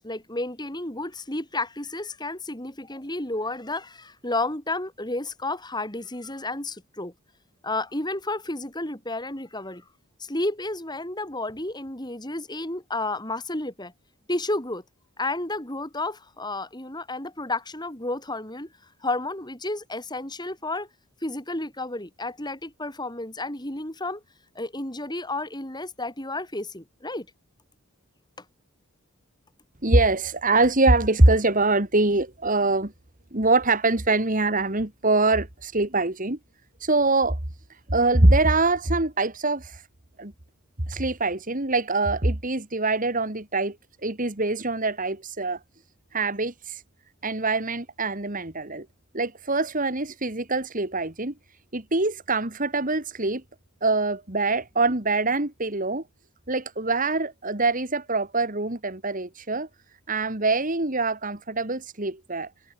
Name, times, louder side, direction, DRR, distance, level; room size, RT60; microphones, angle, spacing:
voice 1, 0.0-7.1 7.6-9.8 10.3-13.9 14.3-14.8 15.2-18.7 19.0-20.9 21.2-24.2 24.6-27.3, left 2 dB, 20° left, 4.2 m, -31 dB
voice 2, 29.8-32.9 33.3-36.4 36.8-37.4 37.9-39.8 40.2-40.3 40.9-43.8 44.0-45.6 46.1-46.8 47.2-48.9 49.1-51.3 51.7-53.4 53.8-56.0 56.5-59.7 60.1-62.5, right 2 dB, 35° right, 2.3 m, -24 dB
head